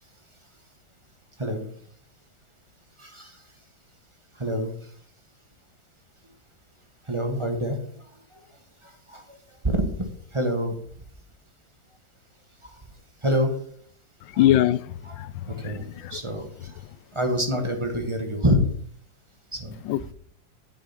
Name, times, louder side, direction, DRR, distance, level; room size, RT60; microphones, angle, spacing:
voice 1, 3.0-3.4 4.3-4.7 7.0-8.4 8.8-10.7 12.6-12.8 13.2-13.5 14.3-14.4 15.4-16.8 17.1-18.6 19.5-19.8, equal, 15° right, 1.6 m, -27 dB
voice 2, 14.4-16.2 19.8-20.1, left 12 dB, 90° left, 1.3 m, -24 dB
9.3 x 7.2 x 6.0 m
omnidirectional pair, 2.0 m